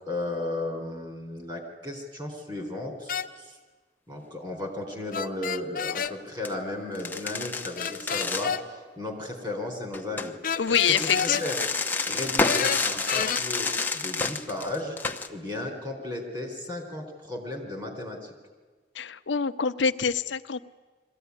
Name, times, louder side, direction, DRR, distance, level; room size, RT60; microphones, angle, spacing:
voice 1, 0.1-3.6 4.1-10.4 10.9-11.6 12.0-15.0 15.3-18.2, left 2 dB, 25° right, 3 dB, 4.0 m, -34 dB
sound 1, 3.1-3.3 5.1-6.1 7.8-8.6 10.4-11.5 12.4-13.4, left 7 dB, 50° left, 0.7 m, -29 dB
sound 2, 5.9-6.1 6.4-6.5 6.9-8.5 9.9-15.3, left 3 dB, 10° left, 0.8 m, -29 dB
voice 2, 10.6-11.4 18.9-20.6, left 7 dB, 90° left, 12 dB, 0.7 m, -25 dB
22.0 x 15.0 x 9.7 m, 1.4 s
head